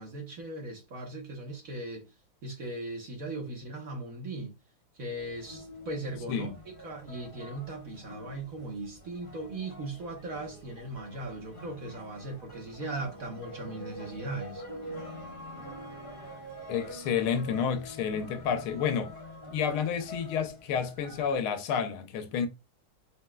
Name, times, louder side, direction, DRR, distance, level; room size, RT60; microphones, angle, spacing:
voice 1, 0.0-2.1 2.4-4.5 4.9-14.6, right 2 dB, 50° right, 1.1 m, -38 dB
sound 1, 5.2-21.3, equal, 30° left, 1.1 m, -46 dB
voice 2, 16.7-19.1 19.5-22.5, left 7 dB, 85° left, 1.6 m, -30 dB
4.4 x 4.2 x 2.2 m
omnidirectional pair, 2.3 m